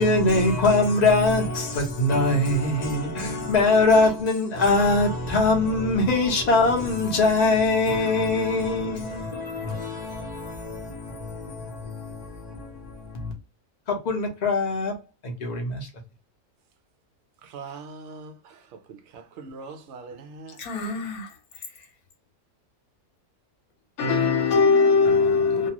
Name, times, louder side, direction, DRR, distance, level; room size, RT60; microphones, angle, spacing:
voice 1, 0.0-13.3 13.9-14.9 15.2-15.9, left 2 dB, 40° left, 0.6 m, -23 dB
voice 2, 17.4-18.6 18.9-20.6, right 4 dB, 65° right, 0.7 m, -41 dB
voice 3, 20.6-21.3 24.0-25.7, left 4 dB, 70° left, 1.2 m, -21 dB
2.7 x 2.4 x 2.8 m
omnidirectional pair, 1.6 m